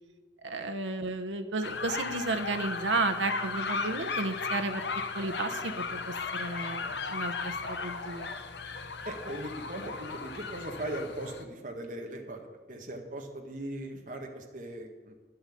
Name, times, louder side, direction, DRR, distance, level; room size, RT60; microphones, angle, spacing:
voice 1, 0.4-4.8 5.1-8.3, right 3 dB, 85° right, 7 dB, 1.0 m, -33 dB
sound 1, 1.6-11.4, left 4 dB, 70° left, 0.9 m, -36 dB
voice 2, 9.0-12.4 12.7-15.1, right 1 dB, 45° right, 2 dB, 1.7 m, -39 dB
10.5 x 7.9 x 8.5 m, 1.2 s
head